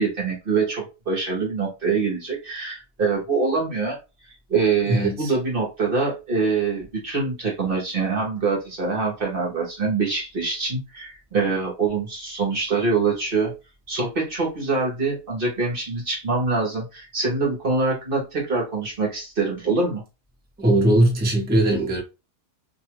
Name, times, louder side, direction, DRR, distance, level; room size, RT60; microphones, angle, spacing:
voice 1, 0.0-4.0 4.5-13.5 13.9-20.0, right 4 dB, 40° right, 1.0 m, -24 dB
voice 2, 4.9-5.3 20.6-22.0, right 1 dB, 10° right, 0.6 m, -19 dB
2.7 x 2.3 x 2.9 m
omnidirectional pair, 1.6 m